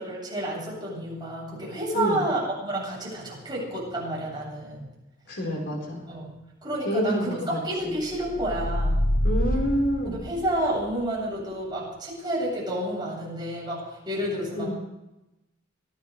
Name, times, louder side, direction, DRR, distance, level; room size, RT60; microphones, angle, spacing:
voice 1, 0.0-4.9 6.1-6.3 6.6-9.1 10.0-14.7, right 1 dB, 25° right, -5 dB, 7.9 m, -30 dB
voice 2, 5.3-6.1 6.8-7.9 9.2-10.2 14.6-14.7, equal, 65° left, -1 dB, 4.6 m, -28 dB
sound 1, 8.2-10.8, left 1 dB, 45° left, 1.3 m, -26 dB
24.5 x 17.5 x 3.4 m, 0.94 s
head